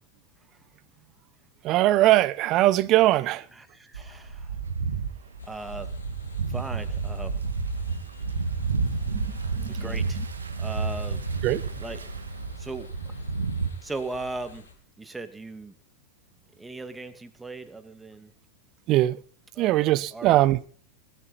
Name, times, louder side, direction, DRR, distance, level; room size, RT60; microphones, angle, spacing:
voice 1, 1.6-3.4 9.1-9.8 11.4-11.6 18.9-19.2 19.6-20.6, right 15 dB, 45° right, 1.0 m, -21 dB
voice 2, 3.5-4.6 5.4-5.9 6.5-7.4 9.7-10.2 10.6-11.2 11.8-12.0 12.6-13.2 13.8-14.7 15.0-15.7 16.6-18.3 19.6-20.3, right 3 dB, 10° right, 2.2 m, -38 dB
sound 1, 3.9-13.7, right 4 dB, 80° right, 2.3 m, -30 dB
sound 2, 5.4-14.7, left 4 dB, 80° left, 5.6 m, -49 dB
20.0 x 13.0 x 4.3 m
figure-of-eight pair, 90°, 0 cm